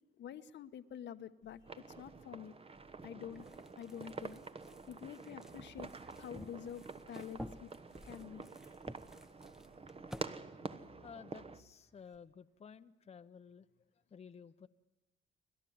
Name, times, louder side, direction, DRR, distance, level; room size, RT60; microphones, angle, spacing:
voice 1, 0.2-2.6 3.0-3.5 3.8-4.4 4.9-5.9 6.2-7.7 8.0-8.5, left 9 dB, 65° left, 11 dB, 1.0 m, -48 dB
sound 1, 1.4-12.2, right 2 dB, 70° right, 5.1 m, -69 dB
sound 2, 1.6-11.6, right 4 dB, 30° right, 1.1 m, -48 dB
sound 3, 3.3-10.2, equal, ahead, 0.9 m, -53 dB
voice 2, 10.5-13.7 14.1-14.7, left 6 dB, 30° left, 9 dB, 0.7 m, -54 dB
29.5 x 12.0 x 9.4 m, 1.1 s
cardioid pair, 90°, 20 cm